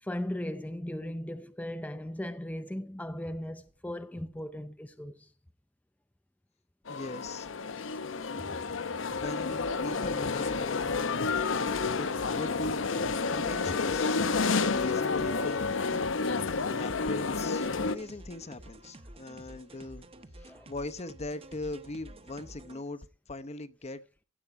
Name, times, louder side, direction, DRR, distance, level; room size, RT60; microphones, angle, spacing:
voice 1, 0.0-5.3 8.4-8.5 20.4-20.7, left 1 dB, 10° left, 0.6 m, -37 dB
sound 1, 6.9-18.0, left 4 dB, 75° left, 0.8 m, -30 dB
voice 2, 6.9-7.5 9.1-12.8 13.3-14.2 14.7-15.7 16.7-20.1 20.7-23.0 23.3-24.0, left 2 dB, 35° left, 0.8 m, -40 dB
sound 2, 9.1-22.8, right 1 dB, 30° right, 1.1 m, -50 dB
16.0 x 8.5 x 4.8 m
head